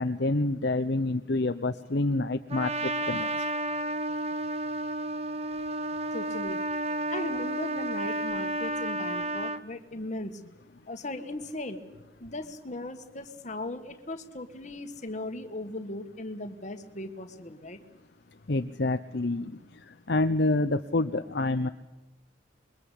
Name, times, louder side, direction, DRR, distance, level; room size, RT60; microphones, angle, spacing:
voice 1, 0.0-3.3 18.5-19.6 20.1-21.7, left 2 dB, 55° left, 9 dB, 0.8 m, -27 dB
Trumpet, 2.5-9.6, right 1 dB, 35° right, 1.0 m, -31 dB
voice 2, 6.1-6.6 7.1-10.4 10.9-11.8 12.2-17.8, left 1 dB, 40° left, 8 dB, 1.9 m, -38 dB
26.5 x 22.5 x 8.5 m, 1.1 s
head